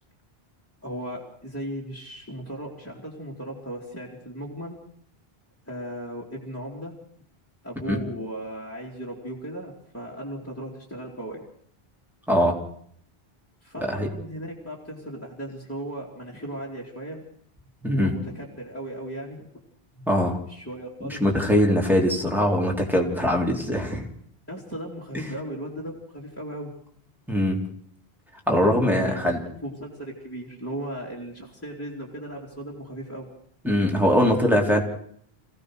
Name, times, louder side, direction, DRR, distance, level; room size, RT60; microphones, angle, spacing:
voice 1, 0.8-4.8 5.7-6.9 7.6-11.4 13.6-17.2 17.9-19.5 20.5-21.2 24.5-26.7 28.6-33.3, right 1 dB, 15° left, -4 dB, 3.6 m, -36 dB
voice 2, 17.8-18.1 20.1-20.4 21.0-24.1 25.1-25.2 27.3-27.7 28.5-29.4 33.6-34.8, equal, ahead, 0 dB, 4.0 m, -22 dB
27.0 x 17.0 x 6.6 m, 0.63 s
omnidirectional pair, 1.0 m